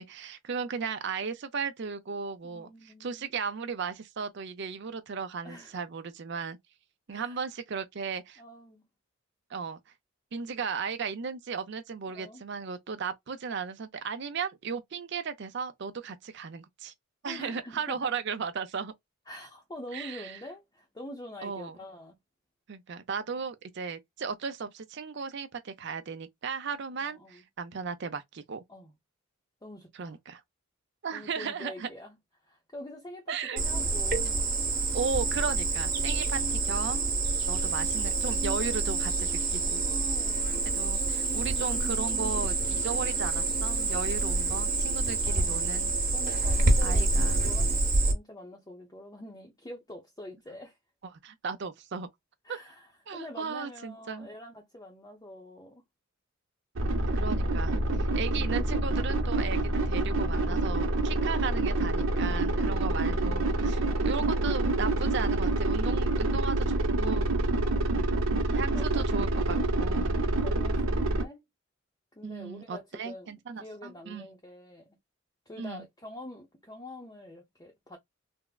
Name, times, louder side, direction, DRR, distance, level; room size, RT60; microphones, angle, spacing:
voice 1, 0.0-6.6 7.1-8.4 9.5-9.8 10.3-16.9 17.2-18.9 19.9-20.4 21.4-21.8 22.7-28.6 30.0-30.4 31.0-31.9 33.3-33.6 34.9-37.1 37.4-39.8 40.7-45.9 46.8-47.5 51.2-52.1 52.5-52.6 53.1-54.3 57.1-67.3 68.5-70.2 72.2-74.3 75.6-75.8, right 5 dB, 60° right, 0.5 m, -36 dB
voice 2, 2.4-3.3 5.4-5.8 7.1-7.4 8.4-8.8 12.1-12.4 17.3-18.1 19.3-22.2 27.0-27.4 28.7-28.9 29.6-30.2 31.1-32.2 32.4-34.7 39.8-40.8 45.2-45.8 46.1-50.8 52.4-55.8 57.7-58.2 67.6-67.9 68.7-69.2 70.4-71.5 72.1-73.3 73.6-75.0 75.5-78.0, left 1 dB, 20° left, 0.7 m, -46 dB
Cricket, 33.6-48.1, right 3 dB, 45° right, 1.1 m, -27 dB
sound 1, 56.8-71.2, right 2 dB, 85° right, 0.8 m, -27 dB
3.5 x 2.0 x 2.3 m
head